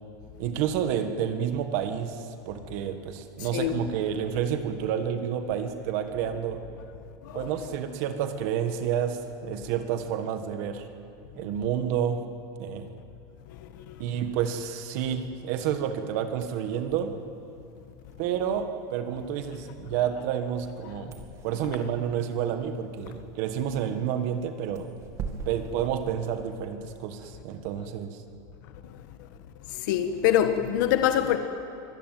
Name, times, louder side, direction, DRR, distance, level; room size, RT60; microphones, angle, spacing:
voice 1, 0.4-6.6 7.3-10.9 11.3-12.2 12.6-12.9 14.0-17.1 18.2-21.2 21.4-24.9 25.5-28.2, right 9 dB, 50° right, 1.5 m, -29 dB
voice 2, 13.6-13.9 29.7-31.4, left 10 dB, 65° left, 1.3 m, -25 dB
sound 1, 16.3-26.8, right 5 dB, 30° right, 2.2 m, -45 dB
24.5 x 18.5 x 9.3 m
supercardioid pair, 165°, 11 cm